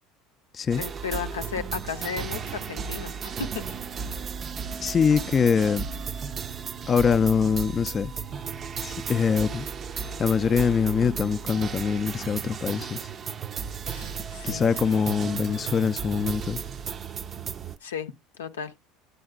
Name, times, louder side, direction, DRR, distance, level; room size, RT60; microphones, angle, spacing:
sound 1, 0.7-17.8, right 6 dB, 40° right, 0.5 m, -34 dB
voice 1, 0.8-3.6 13.9-15.1 17.8-18.7, left 6 dB, 85° left, 0.6 m, -35 dB
voice 2, 4.8-5.9 6.9-8.1 8.8-9.7 9.9-13.1 14.4-16.6, left 6 dB, 35° left, 0.4 m, -24 dB
10.0 x 7.8 x 2.3 m
hypercardioid pair, 75°, 0 cm